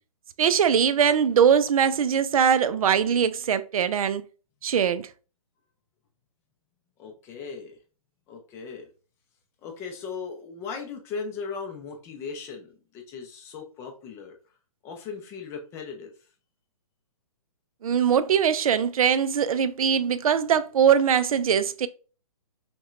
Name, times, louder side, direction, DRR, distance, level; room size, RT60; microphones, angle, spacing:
voice 1, 0.4-4.2 4.6-5.1 17.8-21.9, right 8 dB, 75° right, 0.4 m, -21 dB
voice 2, 7.0-7.8 8.3-8.9 9.6-14.4 14.8-16.3, left 5 dB, 15° left, 0.4 m, -38 dB
5.9 x 2.2 x 2.4 m
hypercardioid pair, 150°, 18 cm